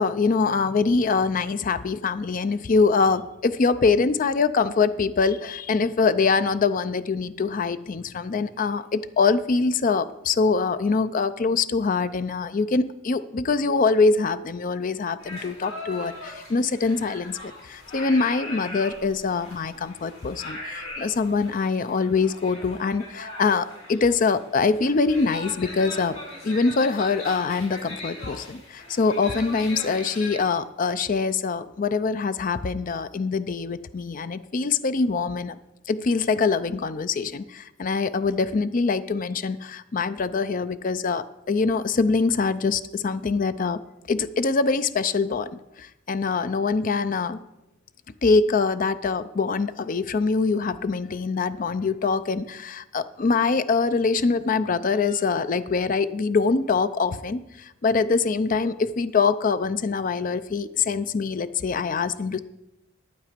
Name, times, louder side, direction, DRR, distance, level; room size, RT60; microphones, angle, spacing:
voice 1, 0.0-26.1 26.4-35.6 35.9-43.8 44.1-47.4 48.2-62.4, left 4 dB, 40° left, 13 dB, 0.4 m, -24 dB
sound 1, 15.2-30.4, left 2 dB, 85° left, 4.7 m, -39 dB
12.0 x 8.7 x 5.1 m, 0.90 s
head